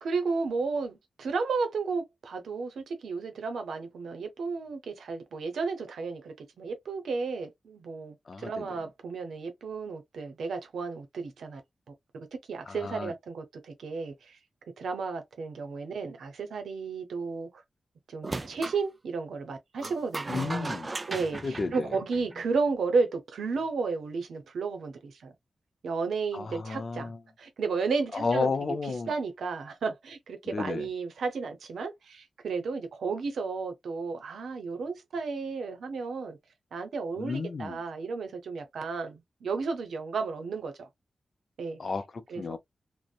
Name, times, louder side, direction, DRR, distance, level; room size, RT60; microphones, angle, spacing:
voice 1, 0.0-11.6 12.1-14.4 14.8-17.5 18.1-20.7 21.1-25.3 25.8-27.1 27.4-28.5 29.1-36.4 36.7-40.9 41.6-41.8 42.3-42.6, right 4 dB, 85° right, 0.7 m, -33 dB
voice 2, 8.3-8.7 12.7-13.1 20.3-20.9 21.4-21.9 26.3-27.2 28.1-29.1 30.5-30.9 37.2-37.8 41.8-42.6, left 4 dB, 55° left, 0.4 m, -32 dB
sound 1, 18.2-18.8 19.8-22.5, right 2 dB, 35° right, 0.3 m, -37 dB
2.5 x 2.1 x 2.3 m
cardioid pair, 55°, 0 cm